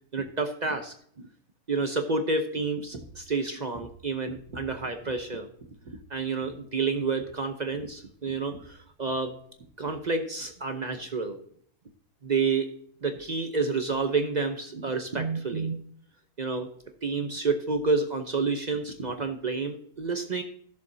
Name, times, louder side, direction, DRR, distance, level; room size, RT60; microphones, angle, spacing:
voice 1, 0.1-0.9 1.7-5.5 6.1-9.4 9.8-11.4 12.2-12.7 13.0-15.8 16.4-16.7 17.0-20.4, right 4 dB, 40° right, 6 dB, 0.6 m, -29 dB
Deep Drums, 2.9-3.3 3.7-5.3 5.6-6.1 6.4-6.6 6.9-9.3 9.6-10.1 10.4-10.6 10.9-11.1, right 2 dB, 75° right, 1.9 m, -48 dB
15.0 x 7.0 x 2.7 m, 0.63 s
omnidirectional pair, 1.6 m